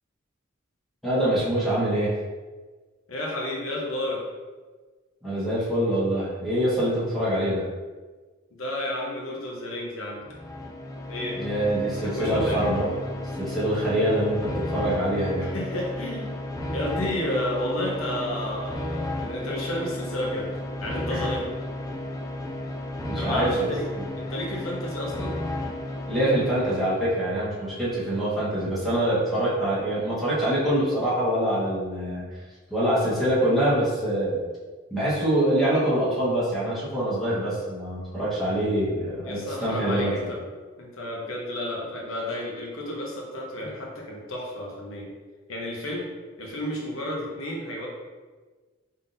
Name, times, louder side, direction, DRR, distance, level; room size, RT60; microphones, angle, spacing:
voice 1, 1.0-2.1 5.2-7.7 11.4-12.9 13.4-15.5 21.1-21.3 23.0-23.7 26.1-32.2 32.7-34.4 34.9-40.1, right 1 dB, ahead, -10 dB, 1.2 m, -25 dB
voice 2, 3.1-4.2 8.5-10.2 11.1-11.4 11.8-12.6 15.4-16.3 16.7-20.5 20.8-21.6 23.1-23.8 24.1-25.4 38.7-38.8 39.2-40.4 40.8-45.1 45.5-46.1 46.4-47.9, left 1 dB, 90° left, -2 dB, 0.9 m, -31 dB
sound 1, 10.2-27.1, left 1 dB, 15° left, 0.3 m, -33 dB
3.7 x 3.7 x 2.6 m, 1.4 s
head